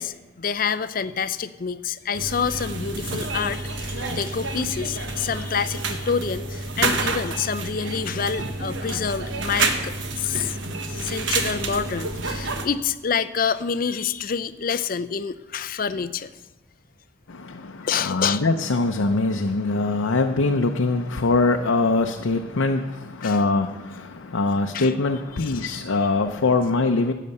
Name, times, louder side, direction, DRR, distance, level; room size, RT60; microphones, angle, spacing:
voice 1, 0.0-10.6 10.9-16.3 17.8-18.4 23.2-23.4 24.7-24.9 25.4-25.8, left 6 dB, 45° left, 14 dB, 0.4 m, -27 dB
sound 1, 2.1-12.7, right 3 dB, 70° right, 1.2 m, -29 dB
voice 2, 17.3-27.1, left 3 dB, 85° left, 4 dB, 0.7 m, -23 dB
12.5 x 8.5 x 6.6 m, 1.1 s
head